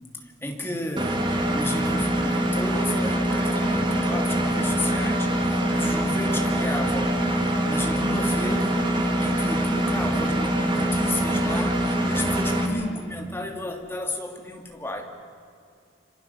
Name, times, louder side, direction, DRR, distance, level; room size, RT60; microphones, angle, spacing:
voice 1, 0.2-15.0, left 1 dB, 10° left, 2 dB, 2.8 m, -33 dB
Engine, 1.0-12.7, right 1 dB, 25° right, 2.5 m, -24 dB
26.5 x 26.0 x 7.0 m, 2.4 s
head